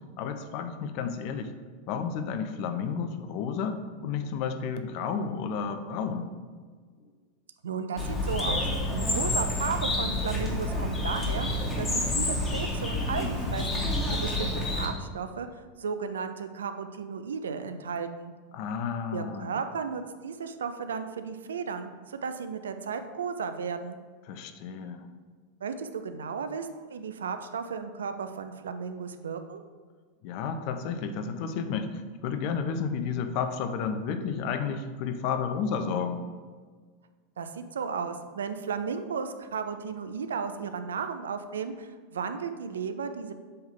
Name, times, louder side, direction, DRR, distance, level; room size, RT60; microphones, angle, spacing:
voice 1, 0.2-1.5 1.9-6.3 18.5-19.6 24.3-25.0 30.2-36.2, left 6 dB, 55° left, 8 dB, 0.6 m, -32 dB
voice 2, 7.6-8.7 8.9-13.8 14.1-18.3 19.1-24.0 25.6-29.6 37.4-43.3, right 6 dB, 80° right, 9 dB, 0.4 m, -34 dB
Bird, 8.0-14.9, left 1 dB, 25° left, 1.7 m, -29 dB
7.7 x 3.6 x 3.7 m, 1.5 s
hypercardioid pair, 90°, 0 cm